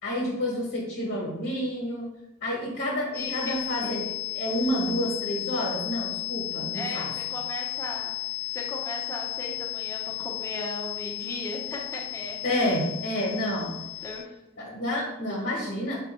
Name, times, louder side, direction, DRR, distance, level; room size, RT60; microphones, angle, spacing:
voice 1, 0.0-2.1 2.4-4.1 4.3-7.1 12.4-13.8 14.6-16.0, equal, 45° left, -4 dB, 1.1 m, -29 dB
sound 1, 3.1-14.2, left 21 dB, 80° left, 0.4 m, -34 dB
voice 2, 3.1-3.6 6.7-8.1 8.5-12.4 14.0-14.2 15.2-15.4, left 1 dB, 15° left, -2 dB, 0.8 m, -37 dB
4.7 x 2.3 x 4.2 m, 0.91 s
head